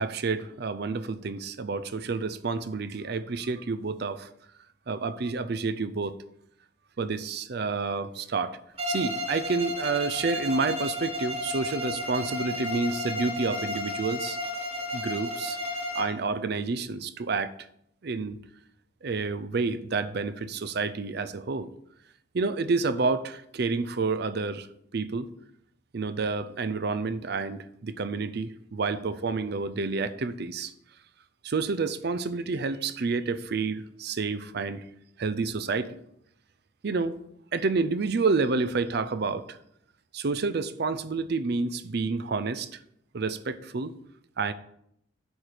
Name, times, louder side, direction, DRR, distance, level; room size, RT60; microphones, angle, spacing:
voice 1, 0.0-4.3 4.9-6.2 7.0-8.6 8.9-14.4 14.9-17.5 18.0-18.4 19.0-21.7 22.3-24.7 24.9-25.3 25.9-30.7 31.4-34.9 35.2-36.0 36.8-37.2 37.5-39.6 40.1-42.7 43.1-43.9 44.4-44.5, right 4 dB, 60° right, 13 dB, 0.5 m, -29 dB
Bowed string instrument, 8.8-16.2, left 1 dB, 35° right, 1.2 m, -33 dB
8.7 x 4.6 x 5.0 m, 0.74 s
head